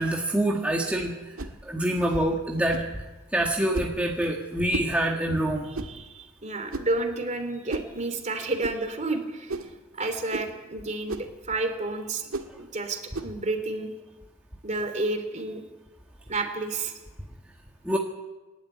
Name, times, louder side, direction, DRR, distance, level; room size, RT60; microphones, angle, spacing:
voice 1, 0.0-1.4 1.6-2.8 3.3-5.7 17.8-18.0, right 1 dB, 5° right, -1 dB, 1.9 m, -26 dB
sound 1, 1.4-1.6 2.7-2.9 3.7-4.0 4.7-4.9 5.7-6.0 6.7-7.0 7.7-7.9 8.6-8.8 9.5-9.7 10.3-10.5 11.1-11.3 12.3-12.5 13.1-13.3, right 2 dB, 75° right, 1.9 m, -33 dB
voice 2, 5.8-9.6 10.0-12.2 12.6-13.9 14.6-15.6 16.3-16.9, right 2 dB, 35° right, 7 dB, 3.0 m, -30 dB
27.0 x 12.0 x 9.7 m, 1.2 s
head